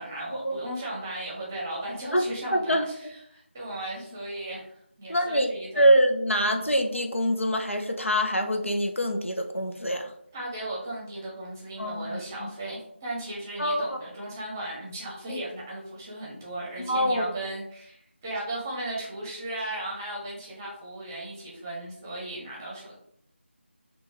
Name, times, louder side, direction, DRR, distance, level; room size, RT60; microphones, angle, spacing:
voice 1, 0.0-4.7 5.0-5.9 6.5-6.7 10.3-23.0, right 1 dB, 15° right, -4 dB, 0.8 m, -36 dB
voice 2, 2.5-2.9 5.1-5.5 5.8-10.1 11.8-12.5 13.6-14.0 16.9-17.3, equal, 80° left, 3 dB, 0.9 m, -24 dB
6.1 x 2.6 x 3.3 m, 0.71 s
figure-of-eight pair, 165°, 7 cm